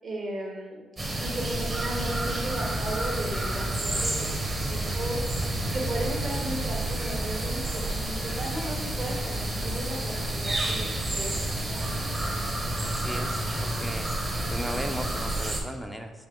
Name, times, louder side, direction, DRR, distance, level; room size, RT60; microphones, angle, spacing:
voice 1, 0.0-0.8 1.2-5.2 5.7-11.9, right 1 dB, 50° right, -2 dB, 1.2 m, -36 dB
sound 1, 1.0-15.6, right 1 dB, 25° right, 0.9 m, -30 dB
voice 2, 12.8-14.1 14.5-16.1, equal, ahead, 4 dB, 0.5 m, -36 dB
5.2 x 2.5 x 3.7 m, 1.4 s
cardioid pair, 90°, 0 cm